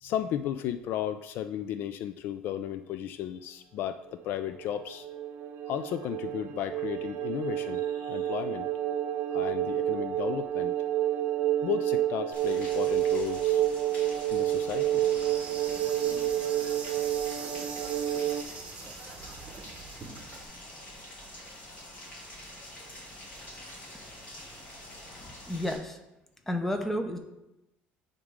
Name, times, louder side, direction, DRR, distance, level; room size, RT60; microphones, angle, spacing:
voice 1, 0.0-5.1 5.7-8.7 9.3-10.8 11.6-13.6 14.3-16.4 21.7-22.1 25.1-25.4, left 10 dB, 60° left, 11 dB, 0.3 m, -35 dB
sound 1, 4.3-18.4, right 12 dB, 65° right, 0.4 m, -29 dB
Rain, 12.3-25.8, left 1 dB, 35° left, 2.8 m, -46 dB
Insect, 14.9-20.4, right 4 dB, 30° right, 1.0 m, -43 dB
voice 2, 25.2-26.0 26.5-27.2, left 1 dB, 5° left, 5 dB, 0.8 m, -31 dB
9.0 x 3.7 x 4.8 m, 0.93 s
cardioid pair, 135°, 4 cm